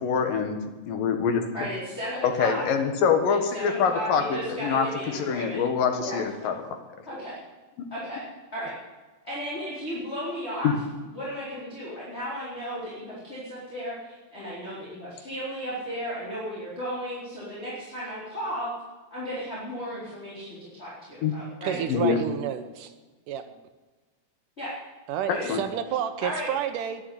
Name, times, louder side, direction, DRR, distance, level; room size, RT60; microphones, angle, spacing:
voice 1, 0.0-0.6 0.9-1.4 2.2-6.5 7.8-7.9 10.6-10.7 21.2-21.4 21.9-22.2 25.3-25.6, left 6 dB, 80° left, 6 dB, 3.2 m, -25 dB
voice 2, 1.5-2.6 3.3-5.6 6.0-6.2 7.0-7.4 7.9-8.2 8.5-8.7 9.2-10.7 11.1-18.7 19.1-21.8 24.6-24.7 25.3-25.5 26.2-26.5, equal, 20° left, -8 dB, 4.2 m, -34 dB
voice 3, 21.6-22.9 23.3-23.5 25.1-27.0, right 9 dB, 75° right, 9 dB, 2.4 m, -30 dB
11.5 x 11.0 x 9.4 m, 1.2 s
omnidirectional pair, 3.9 m